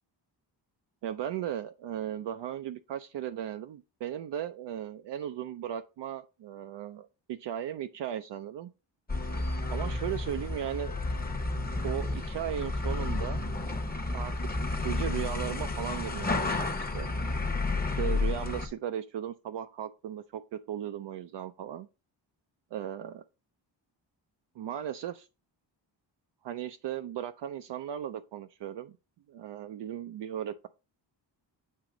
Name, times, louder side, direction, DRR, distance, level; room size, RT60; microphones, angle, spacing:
voice 1, 1.0-8.7 9.7-11.0 11.8-13.4 14.1-14.3 14.8-17.1 18.0-21.9 22.7-23.2 24.6-25.3 26.4-29.0 29.3-30.7, right 10 dB, 65° right, 0.5 m, -36 dB
sound 1, 9.1-18.7, left 2 dB, 20° left, 0.9 m, -31 dB
7.6 x 2.9 x 4.9 m
cardioid pair, 95°, 45 cm